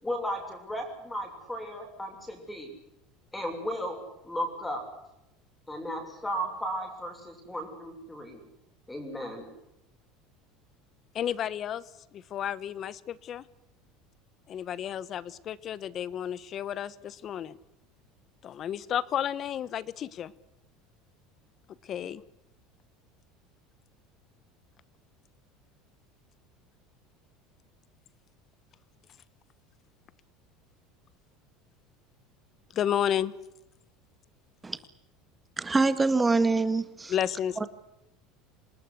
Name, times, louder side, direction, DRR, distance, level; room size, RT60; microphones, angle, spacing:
voice 1, 0.0-2.8 3.3-4.0 4.2-4.8 5.7-8.4 8.9-9.5, equal, 5° left, 5 dB, 7.1 m, -35 dB
voice 2, 11.1-11.8 12.1-13.4 14.5-17.5 18.4-20.3 21.9-22.2 32.7-33.3 37.1-37.7, left 10 dB, 35° left, 19 dB, 1.3 m, -32 dB
voice 3, 35.6-37.1, right 3 dB, 10° right, 12 dB, 1.8 m, -24 dB
28.0 x 19.5 x 8.2 m, 0.87 s
cardioid pair, 155°, 0 cm